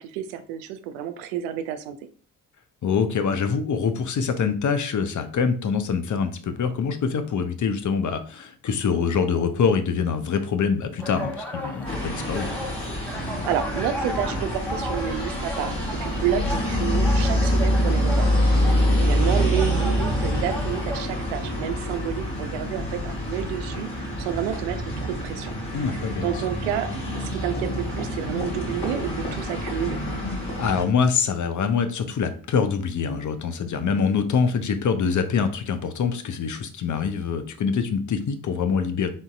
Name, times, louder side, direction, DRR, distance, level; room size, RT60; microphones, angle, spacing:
voice 1, 0.0-2.0 13.5-15.7 16.0-18.3 18.7-25.5 26.2-30.0, right 9 dB, 80° right, 10 dB, 0.5 m, -30 dB
voice 2, 2.8-12.5 25.7-26.2 30.6-39.1, left 6 dB, 45° left, 9 dB, 0.7 m, -24 dB
sound 1, 11.0-21.0, equal, 5° left, 0.9 m, -35 dB
sound 2, 11.8-30.8, equal, 60° left, 2.1 m, -26 dB
3.9 x 3.7 x 2.4 m, 0.41 s
hypercardioid pair, 40°, 44 cm